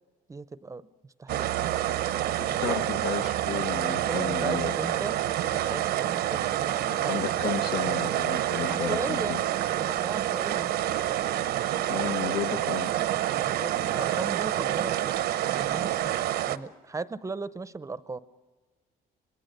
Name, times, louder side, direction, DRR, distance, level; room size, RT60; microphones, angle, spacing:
voice 1, 0.3-0.8 1.2-1.6 2.5-2.8 4.1-5.2 5.4-7.2 8.7-9.4 9.8-10.7 13.3-18.2, right 3 dB, 20° right, 15 dB, 0.6 m, -37 dB
sound 1, 1.3-16.6, right 12 dB, 75° right, 0.8 m, -28 dB
voice 2, 2.4-5.0 6.9-9.4 11.9-12.9, left 8 dB, 85° left, 6 dB, 1.6 m, -33 dB
25.5 x 21.0 x 6.7 m, 1.4 s
cardioid pair, 110°, 17 cm